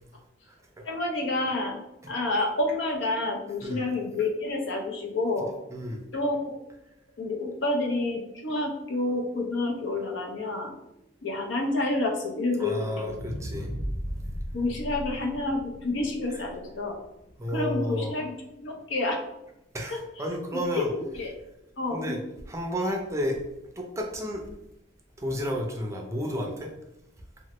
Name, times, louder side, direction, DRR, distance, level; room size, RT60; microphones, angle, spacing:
voice 1, 0.8-1.8 2.1-5.5 6.1-6.5 7.2-10.7 11.2-13.2 14.5-17.0 17.5-19.2 19.9-21.3 21.8-22.1, left 2 dB, 85° left, 1 dB, 0.6 m, -29 dB
voice 2, 12.6-13.7 17.4-18.1 19.7-19.9 20.2-20.9 21.9-22.2 22.5-23.4 23.8-24.4 25.2-26.7, equal, 15° right, 1 dB, 0.4 m, -31 dB
sound 1, 13.0-17.3 17.8-17.9, equal, 50° left, 0.7 m, -36 dB
3.0 x 2.1 x 2.9 m, 0.88 s
head